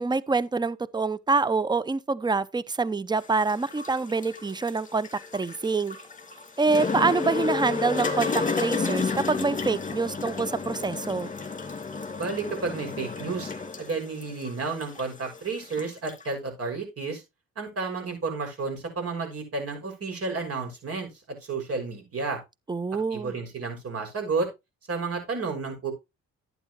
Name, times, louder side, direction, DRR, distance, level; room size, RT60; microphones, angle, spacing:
voice 1, 0.0-6.0 6.6-11.3 22.7-23.3, right 4 dB, 15° right, 0.6 m, -26 dB
sound 1, 3.2-16.3, left 4 dB, 25° left, 2.2 m, -32 dB
voice 2, 12.2-13.5 13.8-17.2 17.6-22.4 23.1-24.5 24.9-25.9, right 4 dB, 50° right, 6.3 m, -31 dB
11.5 x 9.3 x 3.1 m
cardioid pair, 90°, 30 cm